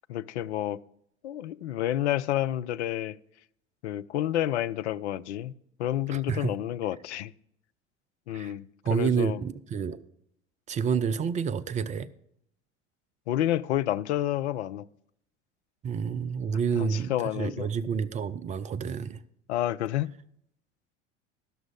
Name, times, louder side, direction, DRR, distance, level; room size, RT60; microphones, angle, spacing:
voice 1, 0.1-0.8 1.2-3.2 3.8-5.5 5.8-7.3 8.3-9.4 13.3-14.9 16.8-17.7 19.5-20.1, left 12 dB, 65° left, 0.5 m, -29 dB
voice 2, 6.1-6.6 8.3-8.5 8.8-10.0 10.7-12.1 15.8-19.2, right 6 dB, 20° right, 0.4 m, -29 dB
12.0 x 6.1 x 6.3 m
figure-of-eight pair, 70°, 36 cm